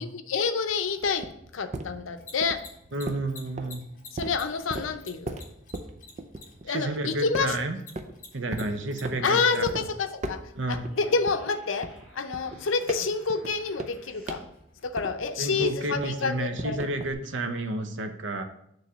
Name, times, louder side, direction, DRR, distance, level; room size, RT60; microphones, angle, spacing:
voice 1, 0.0-2.6 4.1-5.4 6.6-7.5 9.2-10.4 10.7-14.4 14.8-16.8, left 4 dB, 85° left, 9 dB, 0.6 m, -28 dB
sound 1, 0.6-7.0 7.3-8.2 8.5-9.2 9.7-9.8 10.2-10.9 11.3-15.4 15.6-17.1, right 2 dB, 35° right, 0.5 m, -38 dB
Mechanisms, 2.0-15.6, left 3 dB, 40° left, 1.4 m, -52 dB
voice 2, 2.9-3.8 6.7-7.8 8.3-9.6 10.5-10.9 15.4-18.4, right 1 dB, 70° right, 7 dB, 0.7 m, -30 dB
sound 2, 10.7-14.5, equal, ahead, 3.0 m, -55 dB
6.9 x 3.2 x 6.1 m, 0.73 s
head